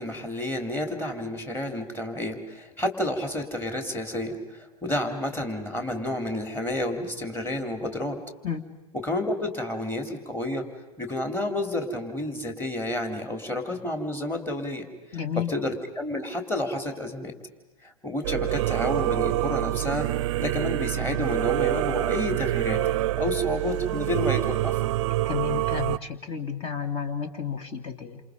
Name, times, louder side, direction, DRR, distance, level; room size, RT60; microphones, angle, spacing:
voice 1, 0.0-8.2 8.9-10.7 11.0-17.3 17.8-20.1 20.4-22.8 23.2-24.8, left 1 dB, 10° left, 7 dB, 3.7 m, -30 dB
voice 2, 15.1-15.5 25.3-28.2, left 7 dB, 30° left, 9 dB, 2.6 m, -31 dB
Singing / Musical instrument, 18.2-26.0, right 16 dB, 55° right, 0.7 m, -26 dB
29.0 x 27.5 x 5.3 m, 1.1 s
hypercardioid pair, 105°, 19 cm